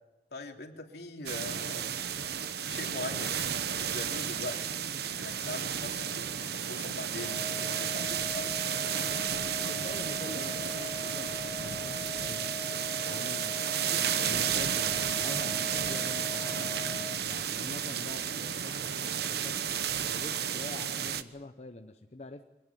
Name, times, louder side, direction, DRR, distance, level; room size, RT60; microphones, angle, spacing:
voice 1, 0.3-1.9 2.7-3.4 3.7-4.8 5.1-8.5, left 2 dB, 60° left, 3 dB, 3.0 m, -42 dB
sound 1, 1.3-21.2, right 8 dB, 60° right, 1.0 m, -32 dB
sound 2, 7.2-17.2, left 2 dB, 15° left, 1.5 m, -42 dB
voice 2, 9.6-12.5 13.0-19.6 20.1-22.5, left 2 dB, 40° left, 6 dB, 0.8 m, -45 dB
24.5 x 18.5 x 9.2 m, 1.1 s
head